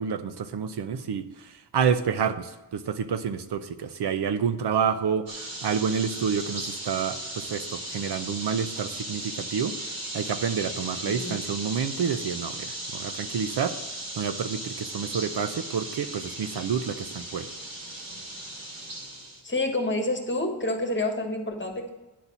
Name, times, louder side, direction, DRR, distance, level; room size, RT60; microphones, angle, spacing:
voice 1, 0.0-13.8 14.1-17.5, right 7 dB, 70° right, 10 dB, 0.7 m, -29 dB
sound 1, 5.3-19.4, right 1 dB, 55° right, 2.6 m, -37 dB
voice 2, 19.4-21.9, left 2 dB, 25° left, 4 dB, 1.4 m, -28 dB
10.5 x 4.1 x 7.1 m, 1.1 s
wide cardioid pair, 105°, 42 cm